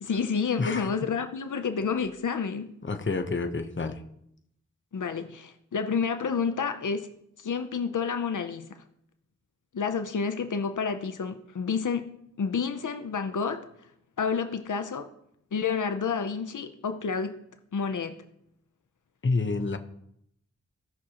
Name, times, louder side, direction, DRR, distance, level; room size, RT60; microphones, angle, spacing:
voice 1, 0.0-2.7 4.9-7.1 7.4-8.7 9.7-13.7 14.2-15.1 15.5-17.4 17.7-18.2, left 5 dB, 85° left, 8 dB, 0.7 m, -29 dB
voice 2, 0.6-0.9 2.8-4.0 19.2-19.8, left 3 dB, 40° left, 7 dB, 0.8 m, -28 dB
16.5 x 6.2 x 2.9 m, 0.74 s
wide cardioid pair, 60°, 30 cm